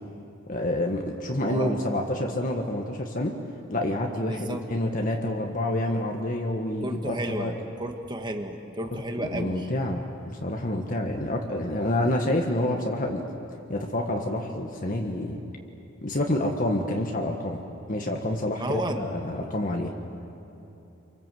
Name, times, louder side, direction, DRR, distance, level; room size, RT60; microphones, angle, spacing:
voice 1, 0.5-3.3 3.7-7.5 9.2-10.0 10.4-13.2 13.7-15.4 16.0-17.6 17.9-19.9, left 1 dB, 40° left, 2 dB, 1.6 m, -28 dB
voice 2, 1.5-1.9 2.2-2.4 4.2-4.6 6.8-9.7 18.6-19.1, right 1 dB, 20° right, 5 dB, 1.7 m, -32 dB
28.0 x 24.0 x 7.8 m, 2.9 s
head